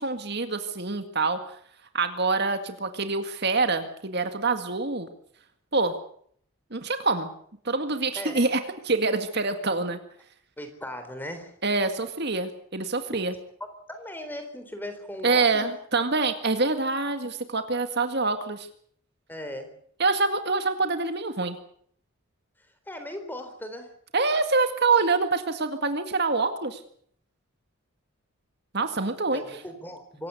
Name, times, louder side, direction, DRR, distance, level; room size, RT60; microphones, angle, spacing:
voice 1, 0.0-1.4 1.9-5.1 5.7-5.9 6.7-7.3 7.6-10.0 11.6-13.3 15.2-18.7 20.0-21.6 24.1-26.8 28.7-29.6, right 3 dB, 50° right, 7 dB, 2.0 m, -26 dB
voice 2, 8.2-8.5 10.6-11.5 13.9-15.7 19.3-19.7 22.9-23.9 29.3-30.3, left 1 dB, 10° left, 8 dB, 3.8 m, -38 dB
25.5 x 16.0 x 8.3 m, 0.62 s
head